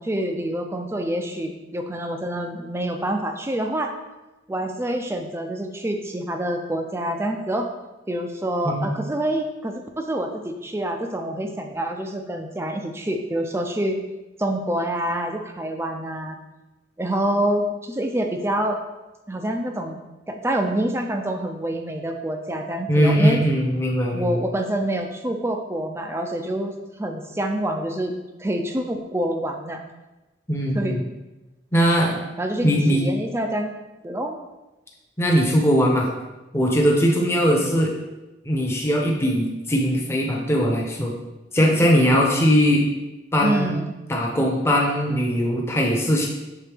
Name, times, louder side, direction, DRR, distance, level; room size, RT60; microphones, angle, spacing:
voice 1, 0.0-3.9 4.5-7.7 8.1-14.0 14.4-16.4 17.0-18.8 19.3-23.4 24.1-28.1 28.4-29.8 30.7-30.9 32.4-33.7 34.0-34.4 43.4-43.9, right 1 dB, 15° right, 4 dB, 0.4 m, -26 dB
voice 2, 22.9-24.4 30.5-31.0 31.7-32.2 32.6-33.0 35.2-36.1 36.5-37.9 38.4-41.2 41.5-42.8 43.3-43.8 44.1-46.3, equal, 15° left, -1 dB, 0.8 m, -20 dB
7.4 x 3.8 x 3.5 m, 1.1 s
head